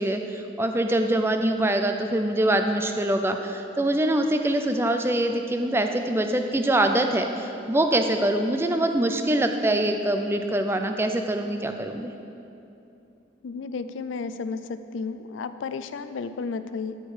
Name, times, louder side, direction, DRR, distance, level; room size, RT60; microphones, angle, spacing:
voice 1, 0.0-12.1, right 1 dB, 15° right, 6 dB, 0.4 m, -24 dB
voice 2, 13.4-17.0, left 4 dB, 80° left, 11 dB, 0.4 m, -33 dB
13.5 x 4.5 x 4.9 m, 2.8 s
head